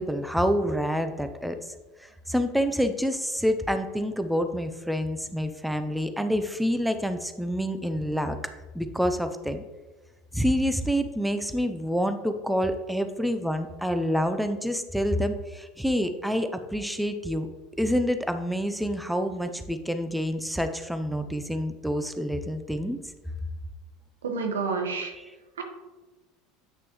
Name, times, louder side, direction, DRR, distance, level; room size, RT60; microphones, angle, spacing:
voice 1, 0.0-1.6 2.0-8.4 8.7-9.6 10.3-17.5 17.8-23.0 25.2-25.3, equal, ahead, 8 dB, 0.6 m, -27 dB
voice 2, 24.2-25.1 25.6-25.7, right 4 dB, 80° right, 3 dB, 1.2 m, -29 dB
8.9 x 6.0 x 3.1 m, 1.2 s
hypercardioid pair, 80°, 0 cm